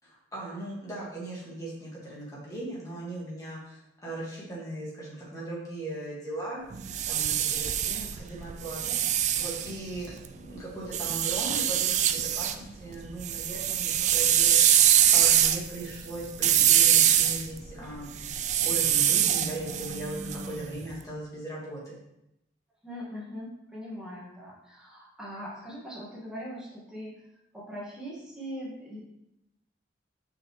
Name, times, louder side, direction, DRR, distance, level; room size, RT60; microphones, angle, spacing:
voice 1, 0.0-6.6 7.1-8.9 9.3-22.0, right 2 dB, 20° left, -6 dB, 2.0 m, -38 dB
sound 1, 6.7-10.3 10.9-12.6 12.9-20.8, right 10 dB, 40° right, 0.3 m, -24 dB
voice 2, 22.8-27.1 27.5-29.0, equal, 5° right, -7 dB, 1.8 m, -40 dB
6.3 x 5.7 x 3.2 m, 0.84 s
head